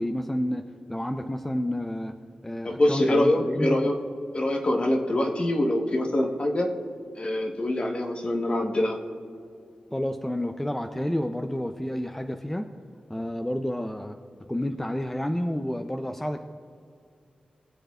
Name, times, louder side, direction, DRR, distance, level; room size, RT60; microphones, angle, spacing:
voice 1, 0.0-2.2 2.4-3.9 9.9-12.7 13.1-14.2 14.5-16.4, left 1 dB, 10° left, 6 dB, 0.5 m, -30 dB
voice 2, 2.6-4.0 4.3-6.7 7.2-9.0, left 1 dB, 40° left, 3 dB, 1.2 m, -24 dB
22.0 x 7.9 x 2.4 m, 2.4 s
wide cardioid pair, 75°, 3 cm